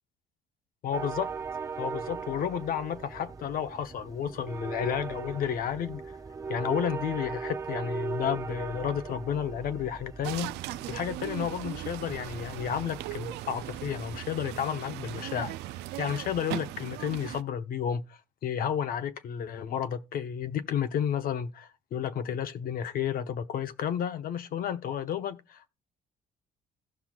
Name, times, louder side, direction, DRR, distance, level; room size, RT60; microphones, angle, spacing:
voice 1, 0.8-1.3 1.8-6.2 6.5-10.5 10.9-15.6 16.0-25.7, left 8 dB, 60° left, 0.8 m, -32 dB
sound 1, 0.9-14.2, right 5 dB, 20° right, 0.6 m, -39 dB
sound 2, 10.2-17.4, right 16 dB, 85° right, 0.4 m, -38 dB
16.0 x 5.9 x 2.3 m
cardioid pair, 110°, 17 cm